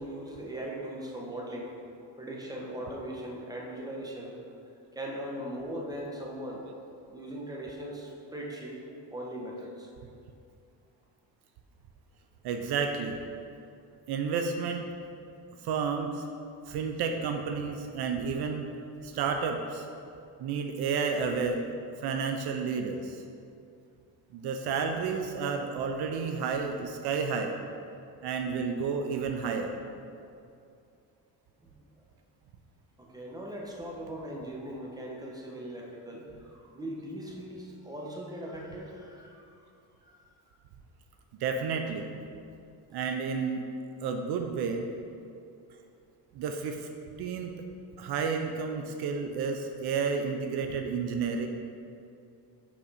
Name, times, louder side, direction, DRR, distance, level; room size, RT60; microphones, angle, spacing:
voice 1, 0.0-1.7 2.1-4.4 4.7-6.7 7.1-9.9 31.6-31.7 33.0-39.6 40.0-40.2, right 1 dB, 10° right, -2 dB, 1.1 m, -39 dB
voice 2, 12.4-13.2 14.1-14.9 15.6-16.2 16.7-18.7 19.0-19.9 20.4-21.6 22.0-23.2 24.3-27.6 28.2-29.7 41.4-42.1 42.9-43.6 44.0-44.9 46.3-46.9 47.2-47.6 48.0-51.5, right 5 dB, 70° right, 5 dB, 0.6 m, -31 dB
5.7 x 4.8 x 4.2 m, 2.5 s
cardioid pair, 90°, 39 cm